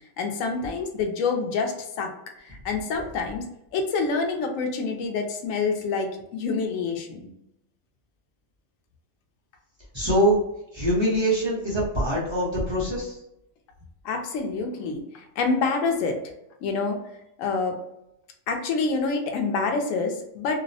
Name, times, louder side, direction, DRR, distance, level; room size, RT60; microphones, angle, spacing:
voice 1, 0.2-2.1 2.4-3.4 3.7-7.3 14.0-16.2 16.6-17.0 17.4-17.8 18.5-20.6, left 4 dB, 80° left, 3 dB, 0.9 m, -27 dB
voice 2, 9.9-10.4 10.7-13.1, right 1 dB, 25° right, -7 dB, 0.6 m, -23 dB
2.6 x 2.0 x 2.7 m, 0.82 s
omnidirectional pair, 1.4 m